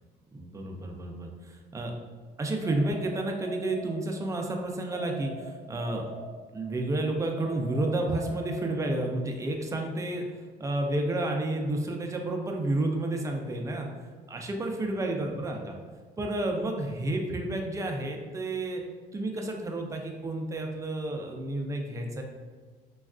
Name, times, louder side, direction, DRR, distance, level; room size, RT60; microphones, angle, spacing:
voice 1, 0.3-2.0 2.4-6.1 6.5-10.2 10.6-13.9 14.3-15.8 16.2-18.8 19.1-22.2, right 2 dB, 20° right, 2 dB, 0.4 m, -31 dB
sound 1, 2.6-4.4 4.9-6.8 7.4-9.2, right 1 dB, 80° left, 1.0 m, -44 dB
3.2 x 2.3 x 2.4 m, 1.5 s
cardioid pair, 110°, 17 cm